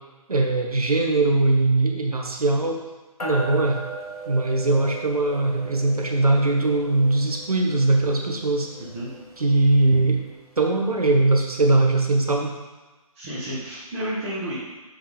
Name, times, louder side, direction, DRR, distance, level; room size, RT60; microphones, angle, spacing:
voice 1, 0.3-2.8 3.2-3.8 4.3-8.7 9.4-10.2 10.6-12.6, right 2 dB, 70° right, 1 dB, 1.3 m, -21 dB
sound 1, 3.2-10.9, right 2 dB, 70° left, 1.5 m, -39 dB
voice 2, 8.8-9.1 13.1-14.6, equal, 20° right, -10 dB, 1.6 m, -31 dB
7.5 x 4.8 x 3.5 m, 1.2 s
figure-of-eight pair, 150°, 19 cm